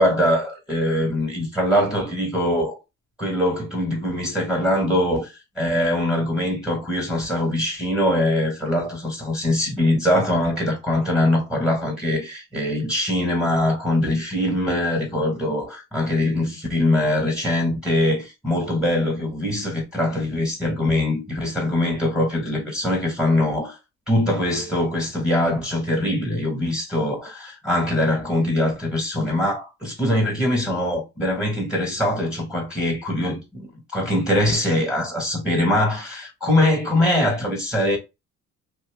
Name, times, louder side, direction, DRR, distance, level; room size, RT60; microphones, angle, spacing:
voice 1, 0.0-2.8 3.2-23.8 24.1-38.0, left 1 dB, 5° right, 1.5 m, -22 dB
2.9 x 2.4 x 3.4 m
cardioid pair, 90°, 30 cm